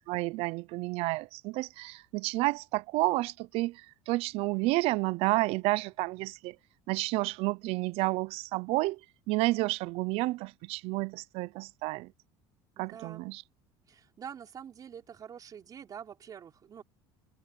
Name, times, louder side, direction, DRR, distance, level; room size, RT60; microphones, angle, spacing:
voice 1, 0.1-6.6 6.9-9.0 9.3-12.1 12.8-13.4, right 21 dB, 65° right, 0.6 m, -30 dB
voice 2, 12.7-13.2 13.9-16.8, right 8 dB, 35° right, 4.9 m, -46 dB
open air
cardioid pair, 130°, 11 cm